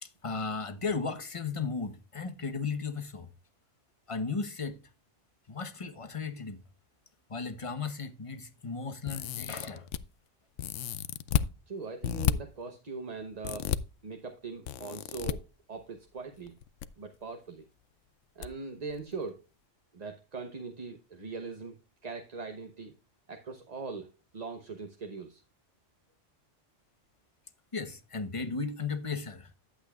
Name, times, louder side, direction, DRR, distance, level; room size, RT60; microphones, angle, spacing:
voice 1, 0.0-3.3 4.1-4.8 5.5-6.6 7.3-9.9 27.7-29.5, left 4 dB, 30° left, 1.0 m, -35 dB
sound 1, 9.1-10.0 10.6-11.5 12.0-12.3 13.4-13.8 14.7-15.3 16.5-16.9 17.1-17.2 18.4-18.5 18.9-19.0, left 11 dB, 80° left, 0.9 m, -31 dB
voice 2, 11.7-13.7 14.0-16.5 17.0-17.6 18.4-19.4 19.9-21.8 22.0-22.9 23.3-25.4, right 4 dB, 35° right, 0.9 m, -41 dB
11.5 x 8.1 x 2.4 m
omnidirectional pair, 1.2 m